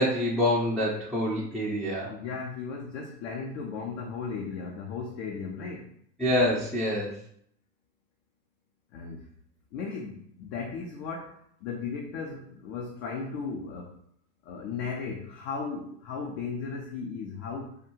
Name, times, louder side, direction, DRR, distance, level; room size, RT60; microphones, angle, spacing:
voice 1, 0.0-2.1 6.2-7.2, left 1 dB, ahead, -7 dB, 0.4 m, -26 dB
voice 2, 2.1-5.9 8.9-9.3 9.7-14.0 14.4-17.8, left 5 dB, 55° left, 0 dB, 0.6 m, -36 dB
3.4 x 2.3 x 3.0 m, 0.66 s
figure-of-eight pair, 75°, 49 cm